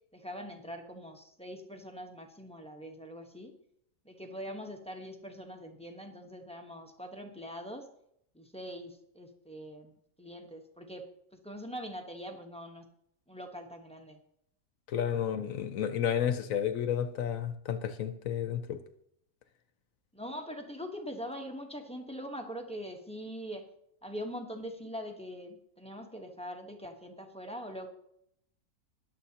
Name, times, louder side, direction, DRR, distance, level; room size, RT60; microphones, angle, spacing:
voice 1, 0.0-3.5 4.0-7.9 8.3-11.1 11.3-12.9 13.3-14.2 20.1-23.7 24.0-27.9, equal, 5° left, 3 dB, 1.0 m, -43 dB
voice 2, 14.9-18.8, left 9 dB, 70° left, 9 dB, 1.1 m, -31 dB
20.5 x 7.6 x 2.9 m, 0.73 s
omnidirectional pair, 1.5 m